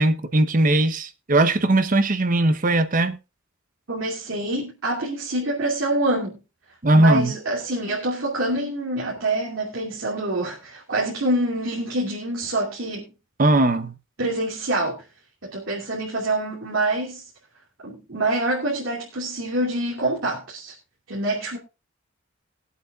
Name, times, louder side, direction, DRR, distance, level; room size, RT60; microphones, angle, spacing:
voice 1, 0.0-3.2 6.8-7.3 13.4-13.9, right 2 dB, 40° right, 0.9 m, -19 dB
voice 2, 3.9-6.4 6.9-13.1 14.2-15.0 15.4-17.2 17.8-20.7 21.1-21.6, right 2 dB, 80° right, 2.8 m, -26 dB
21.5 x 8.2 x 2.4 m
head